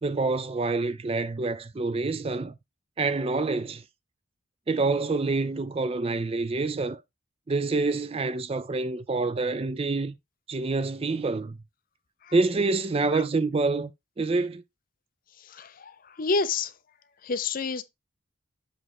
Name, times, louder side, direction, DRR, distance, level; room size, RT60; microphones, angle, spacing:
voice 1, 0.0-2.5 3.0-3.8 4.7-7.0 7.5-10.1 10.5-11.6 12.3-13.9 14.2-14.6, right 3 dB, 30° right, 0.4 m, -27 dB
voice 2, 15.5-16.7 17.2-17.8, left 4 dB, 45° left, 0.5 m, -29 dB
7.5 x 3.2 x 4.7 m
head